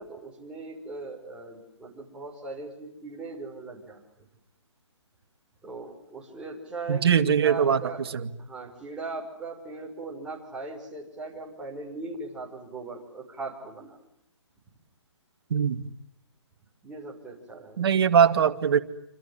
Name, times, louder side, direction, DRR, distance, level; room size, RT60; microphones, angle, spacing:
voice 1, 0.0-4.3 5.6-8.1 8.4-14.0 16.8-17.8, right 3 dB, 5° right, -3 dB, 6.0 m, -39 dB
voice 2, 6.9-7.8 8.1-8.2 15.5-15.8 17.8-18.8, right 7 dB, 55° right, 8 dB, 2.3 m, -21 dB
28.0 x 27.0 x 7.4 m, 0.76 s
hypercardioid pair, 155°, 15 cm